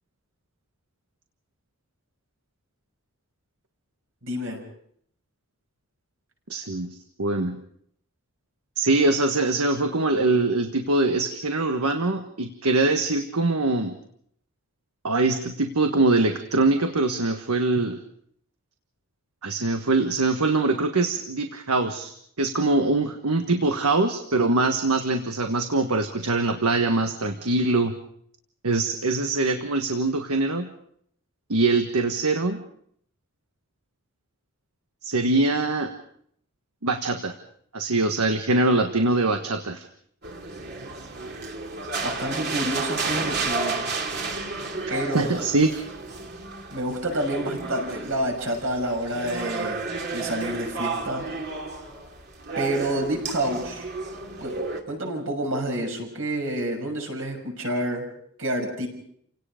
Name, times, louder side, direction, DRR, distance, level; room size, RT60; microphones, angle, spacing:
voice 1, 4.2-4.6 42.0-43.8 44.9-45.3 46.7-49.8 50.1-51.3 52.6-53.9 54.4-54.6 54.9-58.0 58.4-58.9, right 1 dB, 65° right, 2 dB, 6.6 m, -28 dB
voice 2, 6.5-7.6 8.8-13.9 15.0-18.0 19.4-27.9 28.6-30.7 31.5-32.6 35.0-35.9 36.8-37.3 37.7-39.8 45.1-45.7, right 2 dB, 85° right, 6 dB, 1.4 m, -23 dB
sound 1, 40.2-54.8, right 3 dB, 50° right, 2.9 m, -32 dB
30.0 x 18.0 x 5.1 m, 0.67 s
head